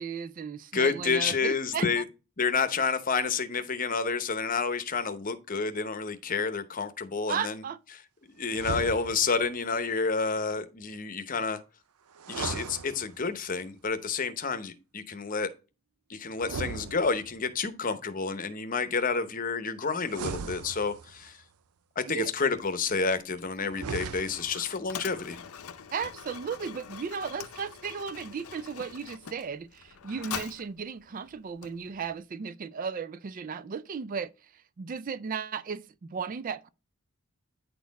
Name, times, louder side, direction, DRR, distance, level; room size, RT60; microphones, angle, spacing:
voice 1, 0.0-2.0 7.3-7.8 22.1-22.3 25.9-36.7, right 6 dB, 40° right, 0.3 m, -35 dB
voice 2, 0.7-2.0 2.4-7.6 8.4-11.6 12.3-15.5 16.1-21.4 22.0-25.4, left 4 dB, 40° left, 0.8 m, -29 dB
sound 1, 8.5-9.5 12.2-13.5 16.4-17.6 20.0-21.3 23.6-24.6, right 5 dB, 85° right, 0.6 m, -38 dB
Mechanisms, 22.5-32.2, left 7 dB, 80° left, 0.7 m, -44 dB
9.4 x 4.2 x 4.0 m
head